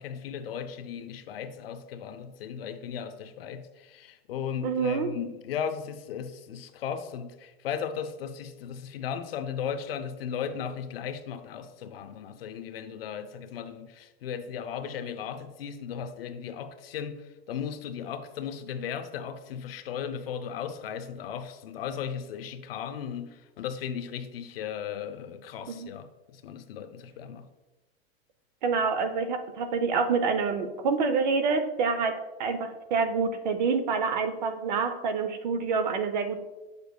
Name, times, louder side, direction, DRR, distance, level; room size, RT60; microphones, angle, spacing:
voice 1, 0.0-27.5, left 8 dB, 65° left, 0.6 m, -36 dB
voice 2, 4.6-5.1 25.7-25.9 28.6-36.4, right 5 dB, 45° right, 0.6 m, -27 dB
7.9 x 6.7 x 2.3 m
supercardioid pair, 170°, 32 cm